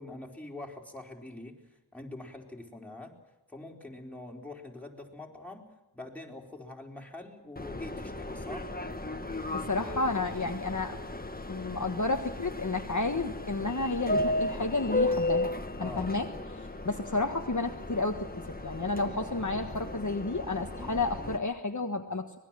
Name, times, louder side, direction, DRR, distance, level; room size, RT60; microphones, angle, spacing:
voice 1, 0.0-1.6 1.9-3.2 3.5-5.7 5.9-8.7 15.8-16.1, left 2 dB, 5° left, 0 dB, 4.2 m, -44 dB
Subway metro underground, 7.6-21.4, left 2 dB, 20° left, 1.5 m, -35 dB
voice 2, 9.5-11.0 11.5-15.5 15.8-22.4, left 3 dB, 45° left, 4 dB, 1.5 m, -31 dB
25.0 x 20.5 x 7.6 m, 1.0 s
wide cardioid pair, 60°, 43 cm